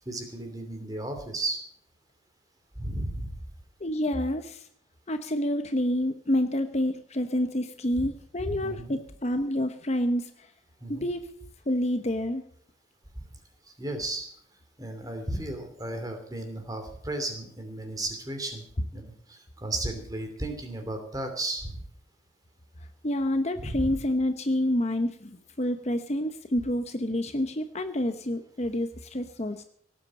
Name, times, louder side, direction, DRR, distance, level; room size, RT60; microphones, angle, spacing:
voice 1, 0.1-1.6 2.8-3.3 8.4-9.0 10.8-11.1 13.8-14.3 14.8-18.6 18.9-21.8 23.6-24.0, right 2 dB, 20° right, 5 dB, 2.9 m, -34 dB
voice 2, 3.8-4.6 5.1-10.3 10.9-11.2 11.7-12.5 23.0-29.6, left 1 dB, 35° left, 8 dB, 0.9 m, -28 dB
18.0 x 8.5 x 7.5 m, 0.64 s
head